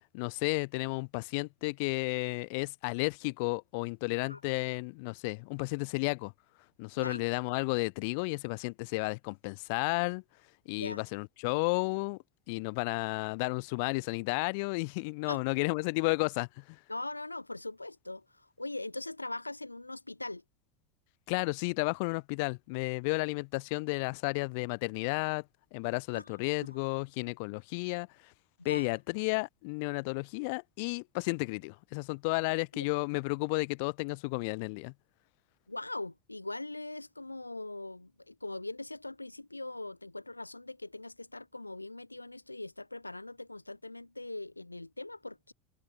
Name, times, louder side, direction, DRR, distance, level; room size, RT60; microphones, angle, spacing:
voice 1, 0.1-6.3 6.8-10.2 10.7-12.2 12.5-16.8 21.3-25.4 25.7-28.1 28.6-34.9, left 31 dB, 55° left, 1.2 m, -32 dB
voice 2, 7.0-7.3 10.7-11.0 15.3-15.4 16.9-20.4 26.1-26.3 26.7-26.8 28.6-28.9 32.7-32.9 35.7-45.5, left 2 dB, 85° left, 3.4 m, -41 dB
figure-of-eight pair, 80°, 0 cm